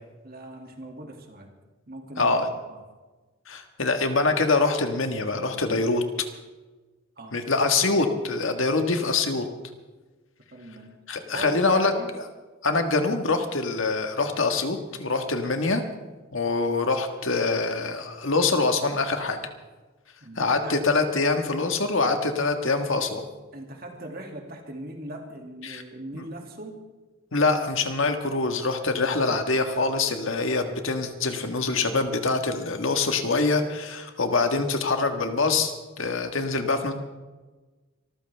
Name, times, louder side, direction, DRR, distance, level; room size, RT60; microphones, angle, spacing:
voice 1, 0.2-1.5 1.9-2.4 2.7-2.8 7.2-7.4 10.5-10.9 11.3-12.1 20.2-20.8 23.5-26.8, right 1 dB, 45° right, 2 dB, 2.4 m, -39 dB
voice 2, 2.2-2.5 3.5-6.0 7.3-9.4 11.1-11.9 12.6-15.8 16.3-19.4 20.4-23.2 25.6-25.8 26.1-26.2 27.3-36.9, left 3 dB, 65° left, 6 dB, 1.6 m, -24 dB
25.0 x 14.5 x 3.5 m, 1.2 s
head